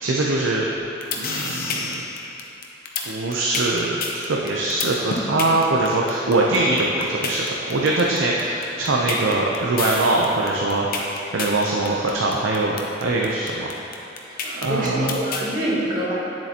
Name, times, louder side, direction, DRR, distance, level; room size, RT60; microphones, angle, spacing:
voice 1, 0.0-0.7 1.1-2.0 3.0-11.0 11.3-13.7 14.6-15.2, right 2 dB, 90° right, -2 dB, 0.6 m, -22 dB
sound 1, 0.8-15.5, left 4 dB, 50° left, 0.7 m, -29 dB
voice 2, 14.3-16.1, right 1 dB, 45° right, -8 dB, 1.9 m, -26 dB
9.6 x 7.5 x 2.9 m, 2.9 s
head